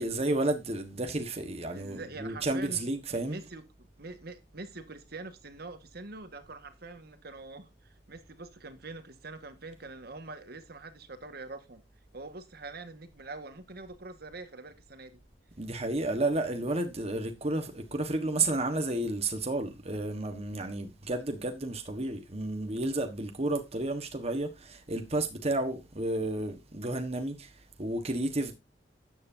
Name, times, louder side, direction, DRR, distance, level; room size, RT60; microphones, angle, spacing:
voice 1, 0.0-3.4 15.6-27.5 27.8-28.5, right 2 dB, 35° right, 1.4 m, -31 dB
voice 2, 1.7-2.8 3.1-11.8 12.1-15.2, right 3 dB, 60° right, 1.7 m, -44 dB
12.5 x 9.6 x 2.7 m
head